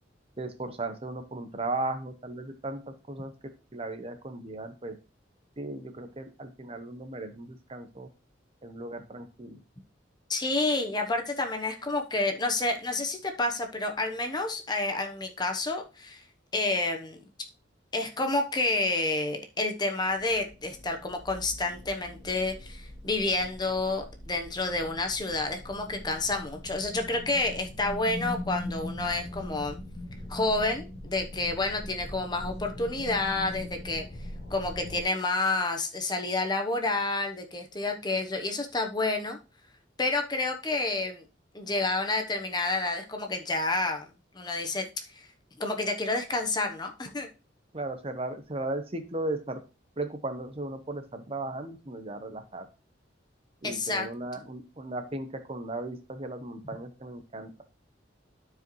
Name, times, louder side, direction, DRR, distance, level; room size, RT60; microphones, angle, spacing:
voice 1, 0.4-2.8 3.1-3.3 3.7-5.0 5.6-8.1 8.6-9.6 47.7-49.6 50.0-52.7 53.6-57.6, right 2 dB, 30° right, 8 dB, 0.9 m, -36 dB
voice 2, 10.3-16.2 16.5-17.2 17.9-29.8 30.3-34.0 34.5-39.4 40.0-41.2 41.5-44.1 44.3-44.8 45.1-45.3 45.6-47.3 53.6-54.1, left 2 dB, 20° left, 4 dB, 0.9 m, -29 dB
sound 1, 20.1-35.0, left 1 dB, 55° left, 1.5 m, -41 dB
12.5 x 4.9 x 3.1 m, 0.32 s
head